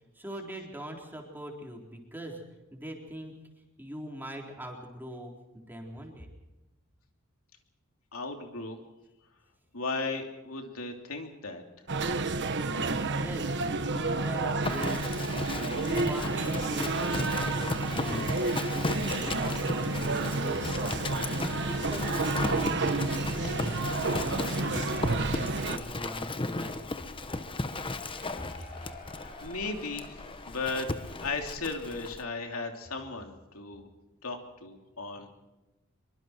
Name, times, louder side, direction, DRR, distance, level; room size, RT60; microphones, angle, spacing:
voice 1, 0.1-2.4 2.7-3.3 3.8-6.3 12.8-13.6 13.8-15.4 15.7-17.7 17.9-20.9 21.4-23.7 24.0-26.9 28.4-28.5, equal, 10° right, 0 dB, 4.0 m, -41 dB
voice 2, 8.1-8.8 9.7-11.6 29.4-30.9 31.2-33.9 34.2-35.3, left 3 dB, 75° left, 3 dB, 3.0 m, -36 dB
sound 1, 11.9-25.8, right 3 dB, 55° right, 1.4 m, -30 dB
Livestock farm animals working animals, 14.6-32.2, left 2 dB, 25° left, 1.1 m, -36 dB
Cheering / Applause / Crowd, 23.1-32.0, left 3 dB, 40° left, 7.6 m, -51 dB
25.0 x 24.0 x 4.6 m, 1.0 s
head